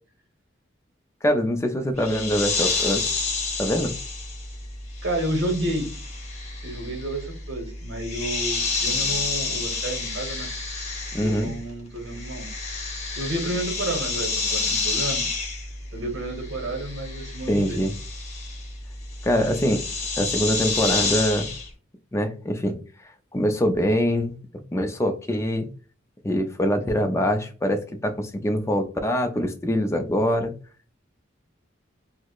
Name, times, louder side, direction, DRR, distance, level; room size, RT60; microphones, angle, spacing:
voice 1, 1.2-3.0 3.6-3.9 11.1-11.5 17.5-17.9 19.2-19.8 20.2-21.5 22.1-22.8 23.3-24.3 24.7-25.7 26.2-30.5, equal, 15° left, 6 dB, 0.4 m, -24 dB
sound 1, 2.0-11.7 12.0-21.7, left 3 dB, 35° left, 0.9 m, -29 dB
voice 2, 5.0-5.9 6.6-10.5 11.2-12.5 13.1-15.2 15.9-17.8, right 1 dB, 65° right, 4 dB, 0.9 m, -30 dB
4.7 x 2.0 x 2.3 m, 0.38 s
head